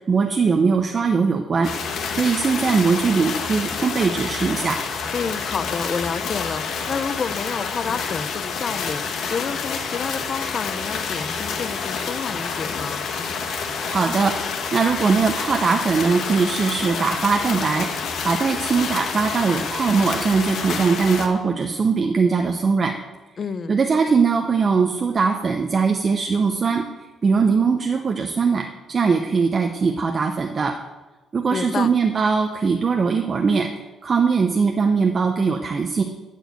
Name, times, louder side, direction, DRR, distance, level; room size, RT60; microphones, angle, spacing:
voice 1, 0.1-4.8 13.8-22.9 23.7-26.8 27.2-30.7 31.3-33.7 34.0-36.0, right 5 dB, 35° right, 4 dB, 0.7 m, -21 dB
sound 1, 1.6-21.3, left 5 dB, 65° left, 1.3 m, -28 dB
voice 2, 5.1-13.0 23.4-23.7 31.5-31.9, left 5 dB, 40° left, 15 dB, 0.5 m, -29 dB
12.5 x 4.7 x 8.0 m, 1.2 s
cardioid pair, 130°, 0 cm